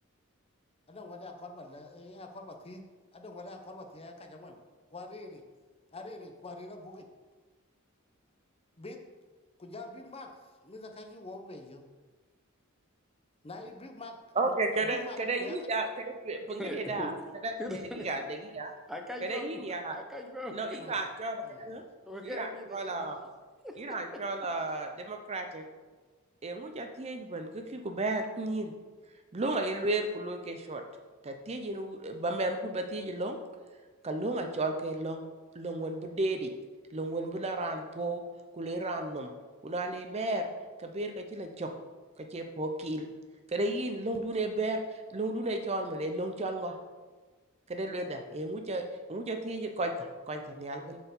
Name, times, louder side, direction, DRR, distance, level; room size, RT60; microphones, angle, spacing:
voice 1, 0.9-2.8 3.1-4.6 4.9-5.4 5.9-7.1 8.8-9.0 9.6-11.8 13.4-14.2 14.4-15.6 20.8-21.0 21.4-21.9, left 2 dB, 25° left, 4 dB, 0.7 m, -45 dB
voice 2, 14.4-15.9 16.2-17.1 17.4-17.6 18.0-18.2 18.5-18.7 19.3-20.0 20.5-21.8 22.2-23.2 23.8-25.6 26.4-28.7 29.3-30.8 31.2-33.4 34.0-35.2 35.5-36.5 36.9-38.2 38.5-39.3 39.6-40.5 40.8-41.7 42.2-43.1 43.5-46.7 47.7-51.0, right 2 dB, 30° right, 5 dB, 0.5 m, -33 dB
voice 3, 16.6-17.1 17.6-18.2 18.9-19.5 19.9-20.8 22.1-23.1 23.6-24.2, left 1 dB, ahead, 2 dB, 0.9 m, -40 dB
7.3 x 4.5 x 7.0 m, 1.4 s
head